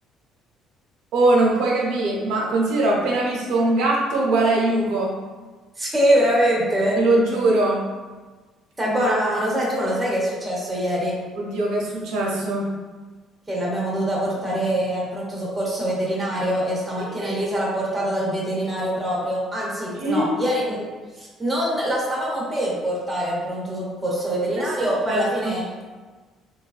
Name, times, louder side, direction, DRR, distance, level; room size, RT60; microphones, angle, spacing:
voice 1, 1.1-5.1 7.0-7.8 11.4-12.7 17.0-17.4 20.0-20.3 25.1-25.6, right 2 dB, 90° right, -3 dB, 0.6 m, -21 dB
voice 2, 5.8-7.0 8.8-11.1 13.5-20.8 21.2-25.6, equal, 10° right, -5 dB, 0.7 m, -24 dB
3.0 x 2.2 x 2.4 m, 1.3 s
cardioid pair, 150°, 0 cm